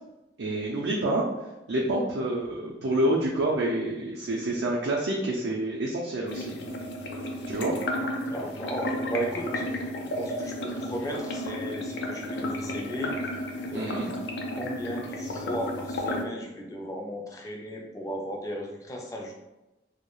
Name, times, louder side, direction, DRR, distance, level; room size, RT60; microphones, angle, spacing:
voice 1, 0.4-1.3 1.7-6.5 7.5-7.7 13.7-14.1, right 1 dB, 85° right, -4 dB, 0.4 m, -28 dB
sound 1, 6.3-16.2, left 1 dB, 85° left, 0.4 m, -33 dB
voice 2, 8.2-9.7 10.1-13.1 13.7-14.1 14.5-19.3, equal, 20° left, 0 dB, 0.3 m, -35 dB
2.2 x 2.1 x 2.9 m, 0.99 s
head